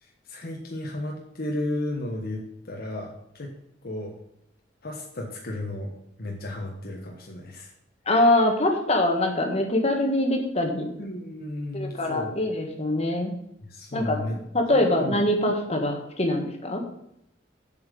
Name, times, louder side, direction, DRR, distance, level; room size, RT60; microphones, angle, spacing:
voice 1, 0.0-3.5 3.8-4.1 4.8-5.9 6.2-7.7 11.0-12.3 13.7-14.4 14.7-15.2, left 1 dB, 55° left, 0 dB, 1.3 m, -34 dB
voice 2, 8.0-10.9 11.7-13.3 13.9-16.8, left 1 dB, 35° left, 3 dB, 1.6 m, -24 dB
7.4 x 5.7 x 6.9 m, 0.77 s
head